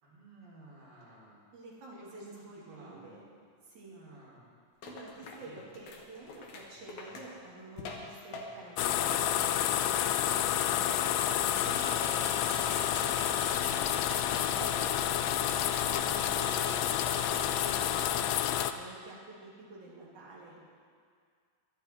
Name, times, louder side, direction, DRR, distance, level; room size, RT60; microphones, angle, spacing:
voice 1, 0.0-1.4 2.1-2.3 2.7-3.1 3.8-4.4 5.4-5.6, right 2 dB, 75° right, -5 dB, 5.8 m, -54 dB
voice 2, 1.5-3.2 3.6-4.0 4.8-13.9 14.3-18.4 18.7-20.6, right 2 dB, 50° right, -6 dB, 4.3 m, -49 dB
sound 1, 4.8-8.7 9.0-11.8 12.1-13.7 14.3-14.9 15.3-16.0 16.3-17.2 17.6-18.0, left 3 dB, 60° left, 2.3 m, -47 dB
sound 2, 8.8-18.7, left 11 dB, 85° left, 2.1 m, -29 dB
sound 3, 11.4-18.0, equal, ahead, 2.6 m, -44 dB
22.5 x 10.5 x 4.6 m, 2.1 s
omnidirectional pair, 4.6 m